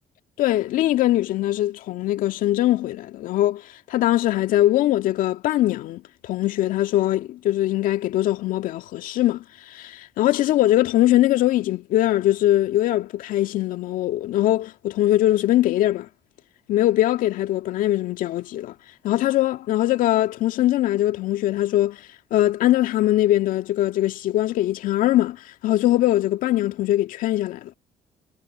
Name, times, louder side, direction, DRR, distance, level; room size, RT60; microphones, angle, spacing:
voice 1, 0.4-3.6 3.9-16.1 16.7-18.7 19.0-22.0 22.3-27.7, left 14 dB, 70° left, 1.9 m, -21 dB
hypercardioid pair, 55°, 15 cm